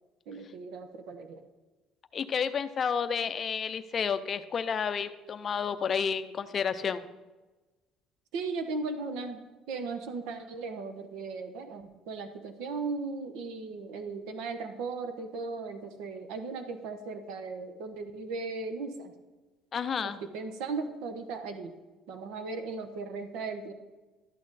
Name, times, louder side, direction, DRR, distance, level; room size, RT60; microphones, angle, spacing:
voice 1, 0.3-1.4 8.3-9.4 9.7-19.1 20.0-21.7 22.1-23.7, right 4 dB, 75° right, 7 dB, 1.0 m, -37 dB
voice 2, 2.1-7.0 19.7-20.2, left 6 dB, 30° left, 11 dB, 0.5 m, -31 dB
12.5 x 8.5 x 4.1 m, 1.2 s
cardioid pair, 165°, 0 cm